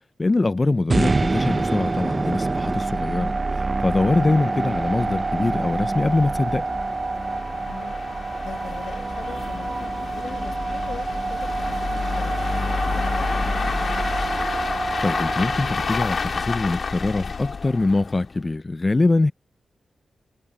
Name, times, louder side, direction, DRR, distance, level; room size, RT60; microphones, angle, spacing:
voice 1, 0.2-6.7 15.0-19.3, left 2 dB, 25° left, 0.3 m, -23 dB
sound 1, 0.9-17.0, right 3 dB, 25° right, 0.6 m, -27 dB
sound 2, 2.3-2.4 2.9-3.0 3.3-3.4 4.0-18.4, left 5 dB, 50° left, 2.7 m, -30 dB
voice 2, 7.5-8.0 8.4-12.5 13.0-14.0, left 7 dB, 80° left, 5.9 m, -41 dB
wide cardioid pair, 150°, 0 cm